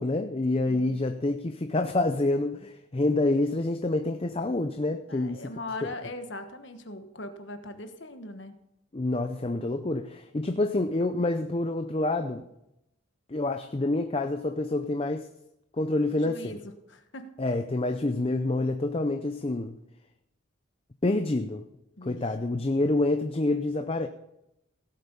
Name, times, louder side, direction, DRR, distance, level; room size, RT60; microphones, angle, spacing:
voice 1, 0.0-5.5 5.8-5.9 8.9-12.5 13.3-15.3 15.8-16.5 17.4-19.8 21.0-21.7 22.0-24.1, left 2 dB, 25° left, 0.5 m, -27 dB
voice 2, 0.7-1.0 5.1-8.5 16.2-17.3 22.0-22.2, left 2 dB, 60° left, 1.3 m, -40 dB
17.0 x 8.1 x 5.4 m
head